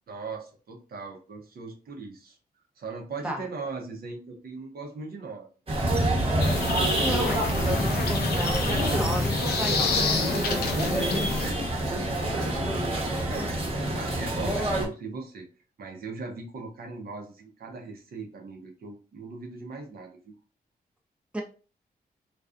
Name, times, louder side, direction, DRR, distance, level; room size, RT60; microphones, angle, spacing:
voice 1, 0.1-2.4 2.8-5.5 10.8-15.5 15.8-20.3, right 4 dB, 65° right, 0.8 m, -40 dB
sound 1, 5.7-14.9, right 1 dB, 35° right, 1.0 m, -26 dB
sound 2, 6.4-11.5, left 5 dB, 70° left, 0.5 m, -30 dB
voice 2, 7.0-10.8 21.3-21.4, equal, 5° right, 0.6 m, -34 dB
2.5 x 2.3 x 2.5 m
cardioid pair, 60°, 17 cm